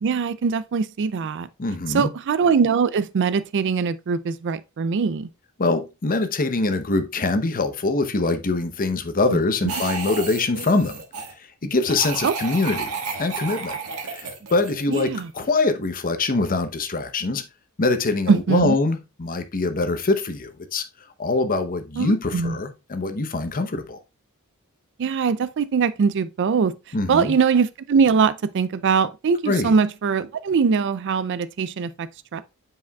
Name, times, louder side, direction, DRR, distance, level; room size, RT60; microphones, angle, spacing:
voice 1, 0.0-1.5 1.9-5.3 9.3-9.4 12.2-12.3 14.9-15.3 18.3-18.8 22.0-22.6 25.0-26.7 27.1-32.4, right 5 dB, 55° right, 0.4 m, -22 dB
voice 2, 1.6-2.1 5.6-11.0 11.4-12.9 13.2-13.8 14.0-17.4 17.8-20.8 21.2-24.0 26.9-27.4 29.5-29.7, left 3 dB, 40° left, 0.7 m, -23 dB
sound 1, 9.7-11.3 11.8-15.4, right 5 dB, 80° right, 1.4 m, -32 dB
8.4 x 4.9 x 2.3 m
head